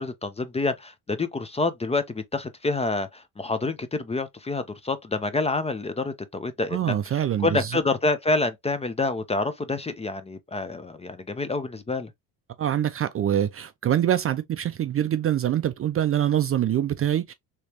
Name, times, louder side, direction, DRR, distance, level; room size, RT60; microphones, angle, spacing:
voice 1, 0.0-12.1, left 3 dB, 15° left, 0.5 m, -28 dB
voice 2, 6.7-7.8 12.6-17.3, right 10 dB, 35° right, 0.4 m, -24 dB
3.1 x 3.1 x 2.8 m
supercardioid pair, 80°, 39 cm